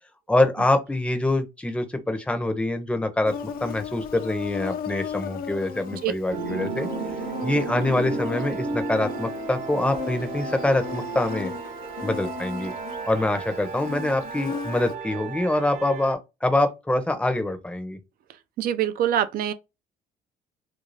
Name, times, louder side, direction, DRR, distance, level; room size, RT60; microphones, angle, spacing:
voice 1, 0.3-3.3 3.6-6.9 7.4-11.5 12.0-12.7 13.1-18.0, left 2 dB, 5° left, 0.6 m, -25 dB
Insect, 3.3-15.0, left 7 dB, 60° left, 0.5 m, -36 dB
sound 1, 6.3-16.1, right 4 dB, 45° right, 0.8 m, -33 dB
voice 2, 18.6-19.5, right 10 dB, 60° right, 0.4 m, -24 dB
2.6 x 2.3 x 3.1 m
cardioid pair, 110°, 17 cm